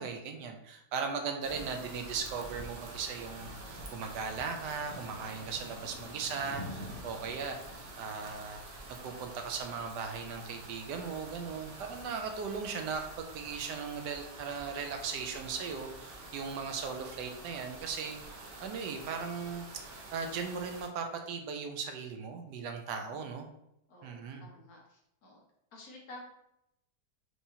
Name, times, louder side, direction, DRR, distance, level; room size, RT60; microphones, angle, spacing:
voice 1, 0.0-7.6 8.0-19.7 19.9-23.5 24.0-24.5, right 5 dB, 80° right, 5 dB, 1.2 m, -38 dB
sound 1, 1.4-20.9, right 2 dB, 65° right, 0.8 m, -48 dB
sound 2, 2.3-11.9, left 1 dB, 35° left, 0.5 m, -50 dB
voice 2, 6.7-7.1 23.0-23.3 23.9-25.4 25.7-26.2, left 2 dB, 60° left, -2 dB, 1.3 m, -53 dB
sound 3, 14.4-20.6, equal, 40° right, 1.5 m, -58 dB
4.7 x 2.8 x 2.7 m, 0.81 s
omnidirectional pair, 1.9 m